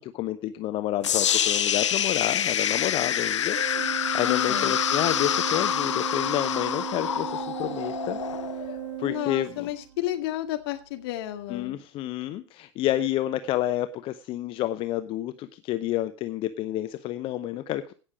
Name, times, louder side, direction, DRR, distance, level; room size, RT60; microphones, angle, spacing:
voice 1, 0.0-8.2 8.6-9.7 11.5-17.9, left 13 dB, 35° left, 11 dB, 0.7 m, -30 dB
sound 1, 1.0-9.1, left 9 dB, 70° left, 0.7 m, -26 dB
Organ, 3.5-10.1, right 13 dB, 65° right, 1.7 m, -36 dB
voice 2, 4.2-4.8 9.0-11.8, left 14 dB, 55° left, 6 dB, 1.9 m, -32 dB
17.0 x 6.5 x 5.0 m, 0.37 s
figure-of-eight pair, 85°, 16 cm